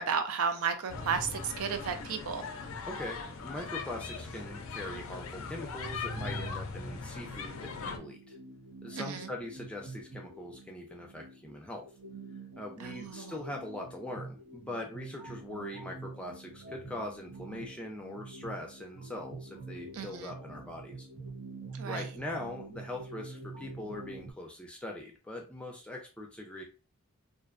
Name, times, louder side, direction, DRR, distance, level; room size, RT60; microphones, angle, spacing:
voice 1, 0.0-2.4 9.0-9.3 12.8-13.3 19.9-20.3 21.7-22.1, right 6 dB, 90° right, 0.5 m, -33 dB
sound 1, 0.9-8.0, left 4 dB, 75° left, 0.4 m, -40 dB
voice 2, 2.9-8.4 8.8-11.9 12.6-21.1 21.8-26.6, left 1 dB, 5° left, 0.4 m, -42 dB
sound 2, 6.2-24.3, right 2 dB, 60° right, 0.9 m, -47 dB
2.5 x 2.1 x 2.4 m
head